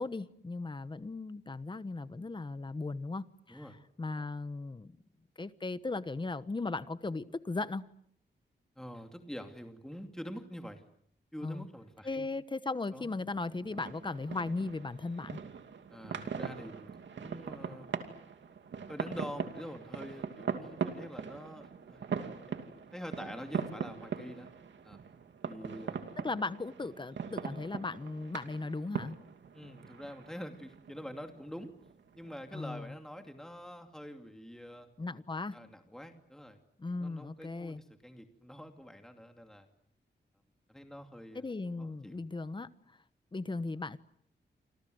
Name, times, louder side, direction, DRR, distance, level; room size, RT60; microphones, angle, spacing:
voice 1, 0.0-3.6 4.0-5.0 5.4-7.8 11.4-11.7 12.0-15.4 26.2-29.2 32.5-32.9 35.0-35.5 36.8-37.8 41.3-42.7 43.3-44.0, left 3 dB, 25° left, 1.2 m, -37 dB
voice 2, 8.8-10.8 11.3-12.3 12.9-13.1 15.9-17.9 18.9-22.3 22.9-24.5 24.8-25.0 25.4-26.1 29.5-31.7 32.1-34.9 35.5-36.6 37.0-39.7 40.7-41.4 41.8-42.2, equal, 5° left, 2.6 m, -46 dB
sound 1, 13.3-32.6, right 6 dB, 85° right, 2.6 m, -41 dB
28.5 x 26.0 x 8.0 m
wide cardioid pair, 135°, 19 cm